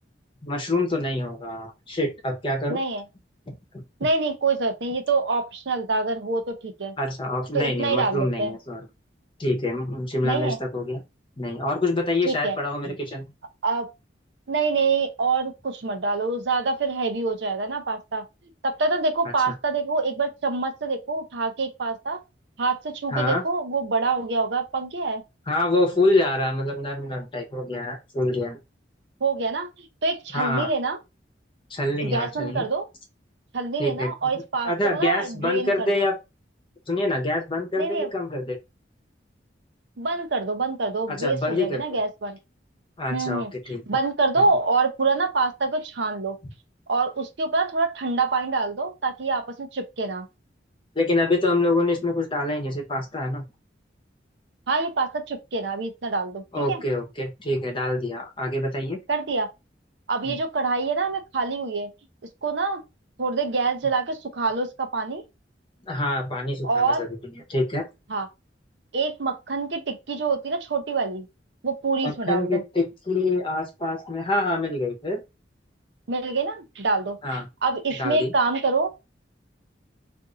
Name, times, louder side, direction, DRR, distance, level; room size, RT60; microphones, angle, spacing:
voice 1, 0.4-2.8 3.5-3.8 7.0-8.9 9.4-11.0 11.4-13.3 23.1-23.4 25.5-28.6 30.3-30.7 31.7-32.6 33.8-34.1 34.6-36.2 36.9-38.6 41.1-41.8 43.0-43.8 50.9-53.4 56.5-59.0 60.3-60.4 65.9-67.8 72.0-75.2 77.2-77.5 77.9-78.3, left 2 dB, 30° left, 0.9 m, -26 dB
voice 2, 2.7-3.0 4.0-6.9 7.5-8.5 10.2-10.6 12.3-12.6 13.6-13.9 14.5-18.2 18.6-22.2 22.6-25.2 29.2-31.0 32.0-32.8 33.5-36.0 37.8-38.1 40.0-42.4 43.1-43.5 43.9-46.4 46.9-50.3 54.7-56.4 56.7-56.8 59.1-59.5 60.1-61.9 62.4-62.8 63.2-65.2 66.6-67.0 68.1-68.3 68.9-71.3 71.6-72.6 76.1-78.9, right 3 dB, 70° right, 0.6 m, -26 dB
2.6 x 2.6 x 3.7 m
head